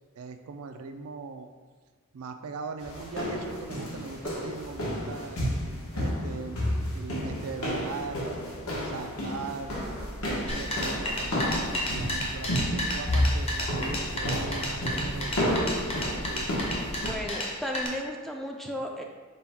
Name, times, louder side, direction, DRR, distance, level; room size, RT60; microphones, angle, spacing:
voice 1, 0.2-1.5 2.1-5.4 5.9-6.7 6.9-8.2 8.8-9.8 10.2-15.4 15.8-16.7, right 4 dB, 80° right, 7 dB, 0.4 m, -40 dB
sound 1, 2.8-17.1, equal, 80° left, 1.3 m, -31 dB
sound 2, 9.6-17.3, equal, 55° left, 1.3 m, -41 dB
sound 3, 10.5-17.9, left 1 dB, 30° left, 0.7 m, -32 dB
voice 2, 16.9-19.0, equal, ahead, 1 dB, 0.3 m, -34 dB
5.4 x 2.3 x 4.4 m, 1.4 s
head